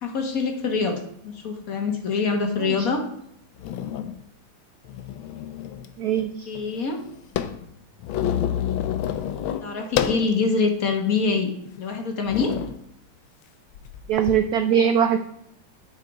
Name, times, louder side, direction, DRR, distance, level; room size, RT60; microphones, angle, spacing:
voice 1, 0.0-1.0 1.2-3.0 6.5-7.0 9.6-11.5 11.8-12.5, left 4 dB, 50° left, 4 dB, 1.4 m, -24 dB
sound 1, 2.9-3.0 3.6-4.2 4.8-5.9 6.2-6.3 6.5-10.3 10.9-11.0 11.7-11.8 12.3-12.8 13.7-14.3, left 10 dB, 80° left, 1.5 m, -28 dB
voice 2, 6.0-6.5 14.1-15.2, right 8 dB, 85° right, 8 dB, 0.8 m, -21 dB
9.1 x 5.3 x 4.7 m, 0.74 s
omnidirectional pair, 2.3 m